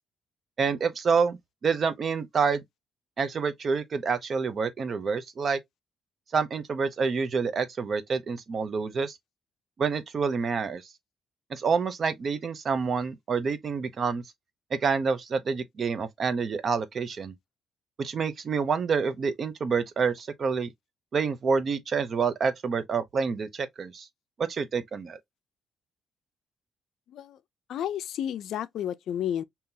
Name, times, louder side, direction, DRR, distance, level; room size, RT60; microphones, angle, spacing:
voice 1, 0.6-2.6 3.2-5.6 6.3-9.2 9.8-10.8 11.5-14.2 14.8-17.3 18.0-20.7 21.1-24.1 24.4-25.2, right 5 dB, 50° right, 0.7 m, -27 dB
voice 2, 27.1-27.4 27.7-29.4, left 10 dB, 75° left, 0.4 m, -31 dB
3.7 x 2.8 x 2.7 m
cardioid pair, 90°, 0 cm